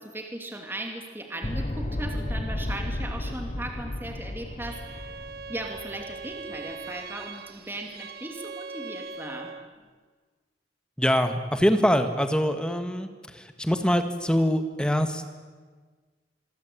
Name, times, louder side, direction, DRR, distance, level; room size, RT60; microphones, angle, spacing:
voice 1, 0.0-5.2 5.5-9.6, right 1 dB, 10° right, 3 dB, 2.9 m, -37 dB
sound 1, 1.4-6.6, left 1 dB, 40° left, 1.0 m, -33 dB
Bowed string instrument, 4.6-9.7, right 4 dB, 60° right, 1.3 m, -41 dB
voice 2, 11.0-15.2, equal, 5° left, 8 dB, 1.9 m, -24 dB
26.0 x 24.0 x 8.7 m, 1.5 s
head